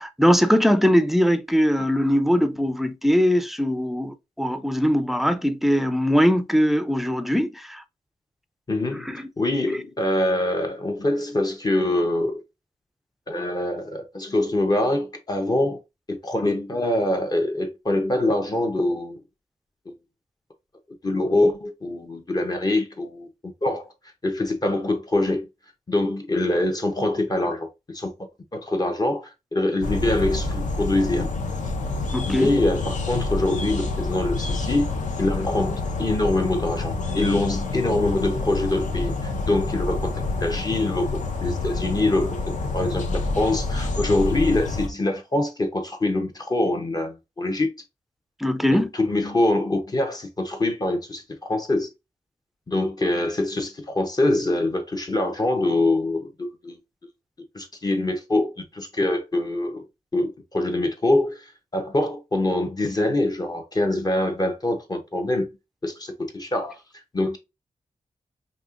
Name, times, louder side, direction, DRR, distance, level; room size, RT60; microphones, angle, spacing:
voice 1, 0.0-7.8 9.1-9.2 32.1-32.5 48.4-48.9, equal, ahead, 0.4 m, -21 dB
voice 2, 8.7-12.4 13.3-15.8 16.1-19.2 19.9-20.0 21.0-23.3 23.6-23.9 24.2-25.5 25.9-28.1 28.5-31.3 32.3-34.9 35.2-42.4 42.7-47.7 48.7-51.9 52.7-56.8 57.5-59.8 60.1-65.5 65.8-66.8 67.1-67.4, left 2 dB, 30° left, 0.7 m, -24 dB
sound 1, 29.8-44.9, left 3 dB, 70° left, 0.8 m, -28 dB
5.2 x 2.8 x 2.5 m
wide cardioid pair, 135°, 13 cm